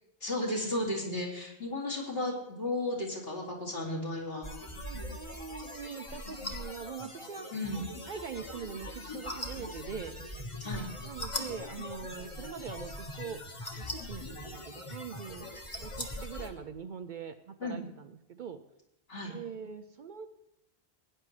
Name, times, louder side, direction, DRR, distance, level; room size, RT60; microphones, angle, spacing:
voice 1, 0.2-4.5 7.5-7.8 10.6-10.8 17.6-17.8 19.1-19.3, left 1 dB, 65° left, -3 dB, 2.8 m, -34 dB
sound 1, 4.4-16.5, left 1 dB, 30° left, 1.3 m, -41 dB
voice 2, 4.7-7.5 8.1-10.2 11.0-13.4 13.8-15.5 15.8-18.6 19.3-20.3, right 7 dB, 60° right, 9 dB, 0.6 m, -43 dB
16.5 x 9.8 x 3.2 m, 0.81 s
omnidirectional pair, 1.1 m